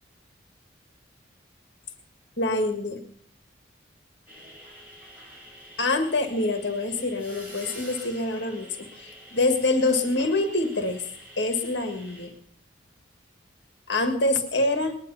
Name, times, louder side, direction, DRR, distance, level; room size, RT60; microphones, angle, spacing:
voice 1, 2.4-3.0 5.8-11.0 11.4-12.3 13.9-15.0, left 2 dB, 60° left, 5 dB, 1.7 m, -25 dB
sound 1, 4.3-12.3, equal, 5° right, 6.3 m, -46 dB
20.0 x 10.5 x 5.6 m, 0.66 s
head